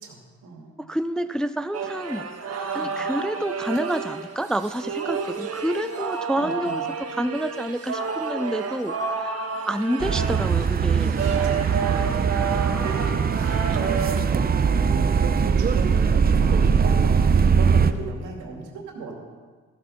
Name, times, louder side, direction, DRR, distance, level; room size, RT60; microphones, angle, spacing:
voice 1, 0.0-0.8 2.7-3.0 6.3-6.8 11.2-19.1, right 4 dB, 85° right, 1 dB, 2.6 m, -37 dB
voice 2, 0.8-2.3 2.7-6.8 7.1-11.3, right 1 dB, ahead, 11 dB, 0.4 m, -28 dB
sound 1, 1.7-14.2, right 5 dB, 50° right, 1.5 m, -30 dB
sound 2, 10.0-17.9, right 6 dB, 30° right, 0.6 m, -21 dB
14.0 x 8.3 x 5.6 m, 1.5 s
cardioid pair, 90°, 30 cm